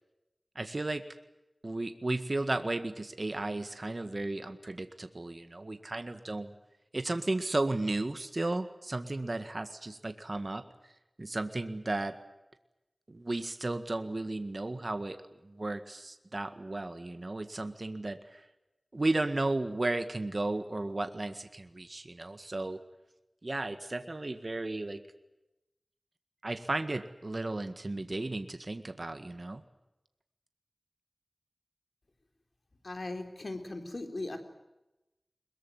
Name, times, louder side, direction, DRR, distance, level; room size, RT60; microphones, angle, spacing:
voice 1, 0.5-1.0 1.6-6.5 6.9-10.9 11.2-12.1 13.1-18.4 18.9-22.8 23.4-25.0 26.4-29.6, right 2 dB, 55° right, 9 dB, 1.7 m, -34 dB
voice 2, 32.8-34.4, left 2 dB, 70° left, 6 dB, 3.9 m, -38 dB
22.0 x 22.0 x 9.4 m, 0.97 s
wide cardioid pair, 45°, 0 cm